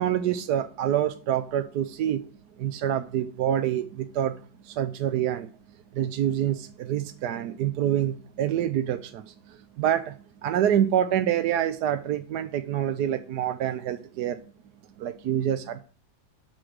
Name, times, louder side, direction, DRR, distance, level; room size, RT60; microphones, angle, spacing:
voice 1, 0.0-2.2 2.6-5.5 5.9-14.4 15.0-15.8, right 10 dB, 70° right, 8 dB, 1.1 m, -27 dB
8.8 x 6.0 x 6.4 m, 0.38 s
omnidirectional pair, 2.1 m